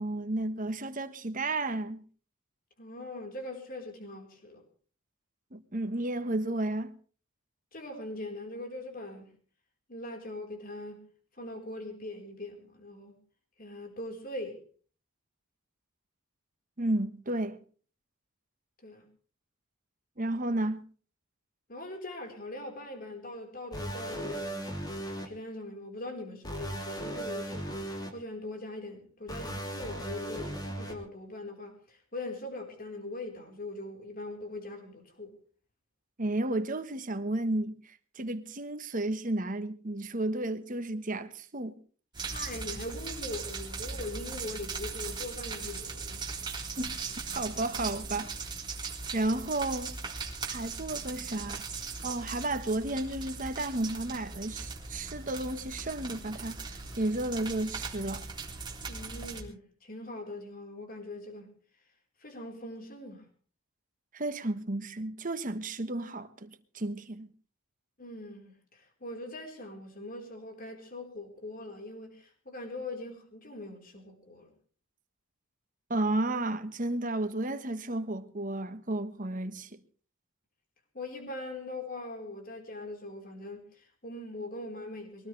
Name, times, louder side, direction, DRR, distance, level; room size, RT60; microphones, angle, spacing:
voice 1, 0.0-2.0 5.5-6.9 16.8-17.6 20.2-20.8 36.2-41.7 46.8-47.0 47.3-48.3 48.8-50.0 50.4-51.6 52.0-58.3 64.1-67.3 75.9-79.8, right 2 dB, 40° right, 1.4 m, -32 dB
voice 2, 2.8-4.6 7.7-9.3 9.9-11.1 11.4-13.2 13.6-14.6 18.8-19.0 21.7-24.7 25.2-35.3 42.2-46.5 58.9-61.6 62.2-63.2 68.0-74.5 80.9-85.3, left 2 dB, 45° left, 4.5 m, -41 dB
sound 1, 23.7-25.3 26.4-28.1 29.3-30.9, right 1 dB, 20° left, 3.0 m, -37 dB
sound 2, 42.1-59.4, right 4 dB, 20° right, 3.4 m, -39 dB
22.5 x 18.5 x 3.4 m
head